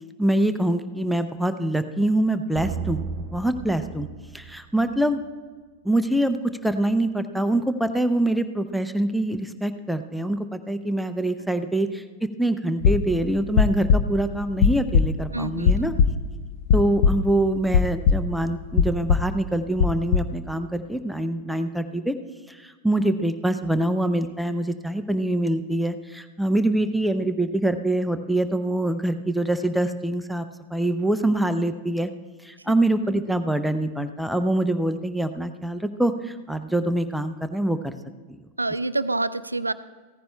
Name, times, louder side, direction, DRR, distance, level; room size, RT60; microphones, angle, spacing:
voice 1, 0.2-4.1 4.3-5.2 5.8-15.9 16.7-22.1 22.5-30.5 30.7-32.1 32.4-37.9, right 1 dB, ahead, 9 dB, 0.5 m, -24 dB
sound 1, 2.6-5.2, right 5 dB, 40° right, 0.6 m, -34 dB
sound 2, 12.8-17.4 17.7-18.5 18.7-19.4 19.8-20.4, left 6 dB, 50° left, 0.6 m, -20 dB
voice 2, 15.3-15.9 38.6-39.7, right 2 dB, 80° right, 15 dB, 0.4 m, -27 dB
16.5 x 14.5 x 2.3 m, 1.4 s
figure-of-eight pair, 90°, 0 cm